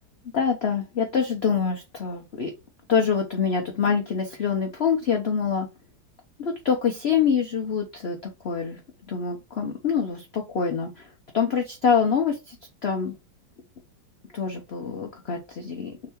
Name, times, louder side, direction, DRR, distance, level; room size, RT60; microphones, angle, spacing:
voice 1, 0.3-2.5 2.9-5.7 6.4-8.2 8.4-8.8 9.1-11.1 11.3-12.6 12.8-13.2 14.3-16.1, left 6 dB, 60° left, 2 dB, 0.6 m, -25 dB
3.6 x 3.3 x 4.4 m, 0.26 s
omnidirectional pair, 1.9 m